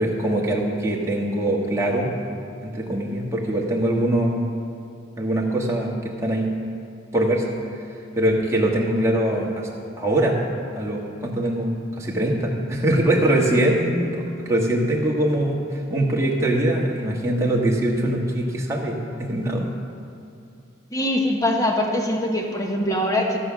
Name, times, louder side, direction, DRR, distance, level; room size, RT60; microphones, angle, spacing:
voice 1, 0.0-2.1 2.6-4.4 5.2-5.9 6.2-6.5 7.1-7.4 8.2-9.7 10.0-10.4 10.7-11.7 12.0-14.1 14.4-19.7, right 1 dB, 15° right, -3 dB, 1.5 m, -22 dB
voice 2, 20.9-23.4, left 1 dB, 20° left, 1 dB, 1.2 m, -23 dB
14.5 x 7.0 x 6.0 m, 2.5 s
head